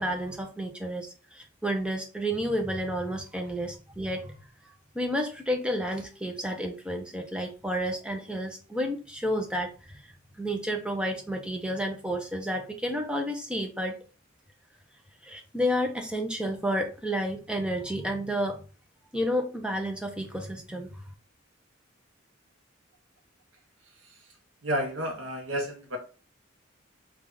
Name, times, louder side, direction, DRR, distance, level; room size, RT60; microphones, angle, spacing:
voice 1, 0.0-4.4 4.9-10.0 10.4-14.0 15.2-18.6 19.1-21.0, equal, 5° right, 3 dB, 0.6 m, -31 dB
voice 2, 24.6-26.0, equal, 75° right, 3 dB, 0.8 m, -31 dB
3.2 x 2.4 x 3.7 m, 0.34 s
head